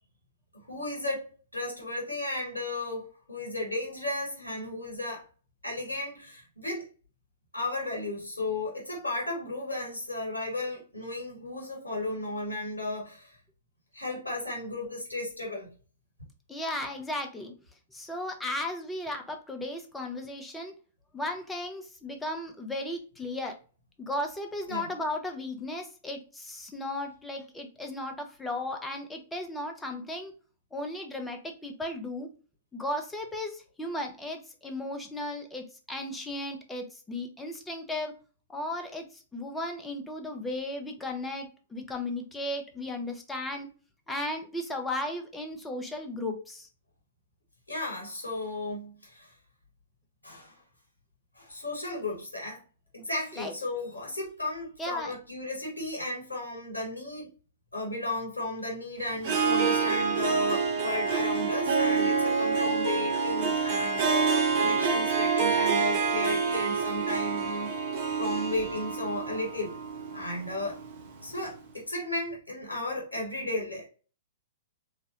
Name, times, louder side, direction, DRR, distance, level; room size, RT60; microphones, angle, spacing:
voice 1, 0.5-1.2 1.5-5.3 5.6-6.9 7.5-13.4 13.9-15.7 24.7-24.8 47.7-49.3 50.2-50.6 51.4-52.6 52.9-57.3 57.7-67.7 68.2-69.7 70.1-70.8 71.2-73.9, left 2 dB, 85° left, 1.0 m, -34 dB
voice 2, 16.5-17.5 17.9-20.7 21.1-23.6 24.0-30.3 30.7-32.3 32.7-38.1 38.5-43.7 44.1-46.7 53.3-53.5 54.8-55.1, left 1 dB, 10° left, 0.6 m, -35 dB
Harp, 59.2-71.1, right 5 dB, 45° right, 0.7 m, -27 dB
3.2 x 2.2 x 2.8 m
figure-of-eight pair, 110°, 0 cm